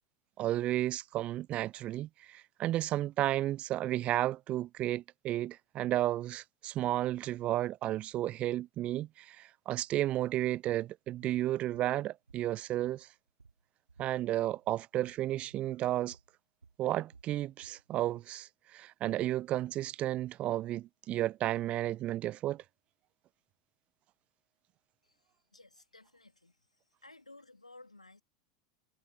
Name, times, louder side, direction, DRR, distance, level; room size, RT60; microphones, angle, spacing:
voice 1, 0.4-13.1 14.0-16.2 16.8-22.6, right 14 dB, 35° right, 0.5 m, -33 dB
sound 1, 11.2-11.4 11.7-12.6 12.8-14.7 14.9-15.2 15.5-15.7 16.1-16.3 16.6-18.3, right 4 dB, 80° right, 2.8 m, -60 dB
voice 2, 25.0-26.7 27.0-28.2, left 2 dB, 85° left, 3.2 m, -56 dB
figure-of-eight pair, 85°, 4 cm